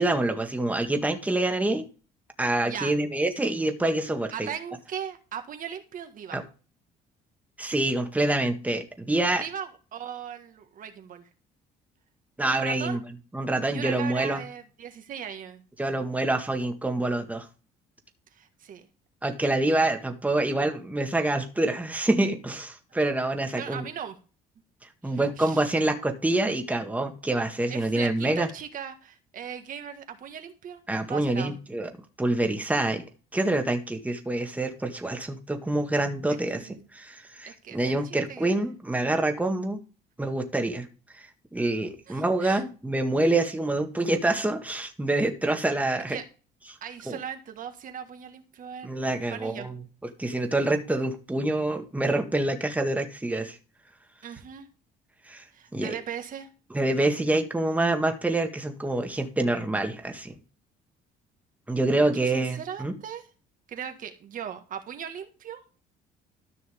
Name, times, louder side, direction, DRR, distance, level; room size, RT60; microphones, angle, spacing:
voice 1, 0.0-1.9 2.4-4.5 6.3-6.4 7.6-9.4 12.4-13.0 13.3-14.4 15.8-17.5 19.2-23.8 25.0-28.5 30.9-31.9 32.2-33.0 33.3-39.8 40.2-40.9 41.1-46.2 47.1-47.2 48.8-49.8 50.2-53.6 55.3-55.4 55.7-56.0 56.7-60.4 61.7-63.0, right 2 dB, 10° right, 5 dB, 1.7 m, -26 dB
voice 2, 2.6-3.0 4.3-6.4 9.4-11.3 12.4-13.0 13.7-15.7 18.3-18.9 23.5-24.2 25.0-25.7 27.7-31.6 36.3-36.9 37.5-38.7 42.1-42.6 45.9-46.2 46.8-49.7 54.2-54.7 55.5-56.5 62.0-63.3 63.7-65.6, right 8 dB, 55° right, 7 dB, 1.6 m, -39 dB
13.0 x 6.1 x 3.6 m, 0.36 s
cardioid pair, 110°, 17 cm